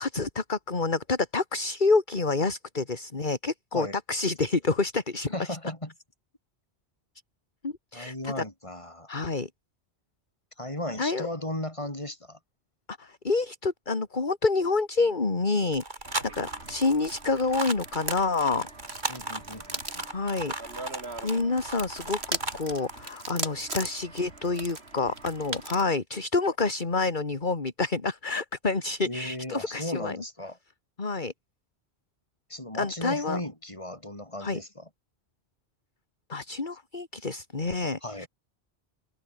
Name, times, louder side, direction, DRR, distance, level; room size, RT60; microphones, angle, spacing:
voice 1, 0.0-5.3 7.6-8.4 9.1-9.5 11.0-11.3 12.9-18.7 20.1-20.5 21.2-30.2 31.0-31.3 32.7-33.4 34.4-34.6 36.3-38.3, left 3 dB, 45° left, 2.3 m, -28 dB
voice 2, 5.3-5.9 7.9-9.2 10.6-12.4 19.1-20.1 29.0-30.6 32.5-34.9 38.0-38.3, left 1 dB, 30° left, 4.9 m, -36 dB
sound 1, 15.7-22.6 22.9-23.0, right 2 dB, 45° right, 3.6 m, -36 dB
sound 2, 16.0-25.9, right 3 dB, 70° right, 3.6 m, -39 dB
open air
omnidirectional pair, 1.1 m